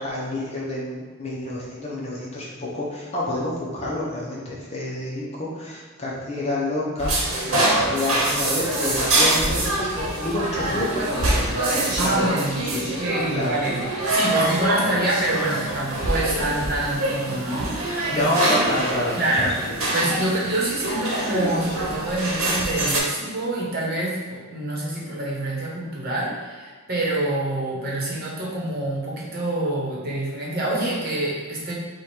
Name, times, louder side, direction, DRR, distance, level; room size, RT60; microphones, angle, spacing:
voice 1, 0.0-7.5 7.8-12.2 12.6-12.8 13.3-13.6 17.9-19.1, left 1 dB, 30° left, -5 dB, 0.8 m, -28 dB
sound 1, 7.0-23.0, right 1 dB, 70° right, 1.1 m, -25 dB
voice 2, 12.0-13.8 14.1-18.5 19.2-19.5 19.9-31.7, right 1 dB, 45° right, -5 dB, 1.1 m, -26 dB
4.9 x 2.4 x 4.4 m, 1.5 s
head